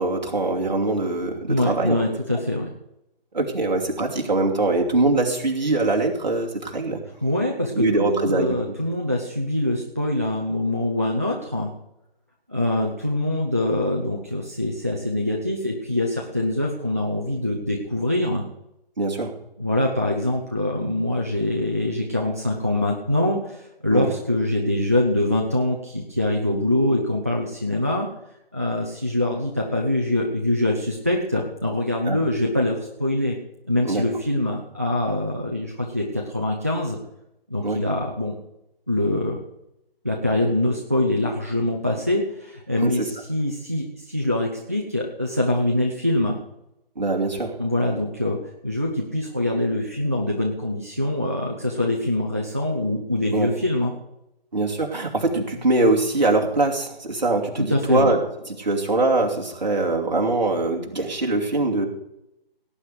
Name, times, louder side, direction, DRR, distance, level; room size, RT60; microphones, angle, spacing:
voice 1, 0.0-2.0 3.3-7.0 7.7-8.7 19.0-19.3 23.9-24.1 32.1-32.2 33.8-34.0 37.6-37.8 42.8-43.1 47.0-47.5 53.3-53.5 54.5-58.2 58.5-61.9, right 2 dB, 45° right, 0 dB, 2.7 m, -23 dB
voice 2, 1.5-2.7 7.2-11.7 12.5-18.4 19.6-28.1 28.5-33.4 33.7-37.0 37.5-38.3 38.9-39.4 40.0-46.4 47.6-53.9 57.6-58.1, left 1 dB, 15° right, 0 dB, 0.6 m, -24 dB
17.5 x 9.2 x 4.9 m, 0.83 s
figure-of-eight pair, 155°, 30 cm